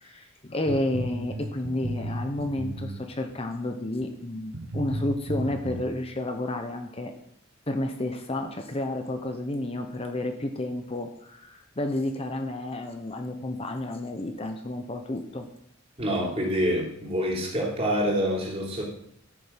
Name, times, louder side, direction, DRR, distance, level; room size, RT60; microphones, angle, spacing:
voice 1, 0.0-7.1 7.7-15.5, left 1 dB, 30° left, 6 dB, 0.9 m, -31 dB
sound 1, 0.7-3.3 4.0-4.1 4.5-5.8, right 1 dB, 60° right, 1.0 m, -34 dB
voice 2, 16.0-18.8, equal, 30° right, -2 dB, 3.1 m, -26 dB
13.5 x 6.7 x 5.9 m, 0.73 s
head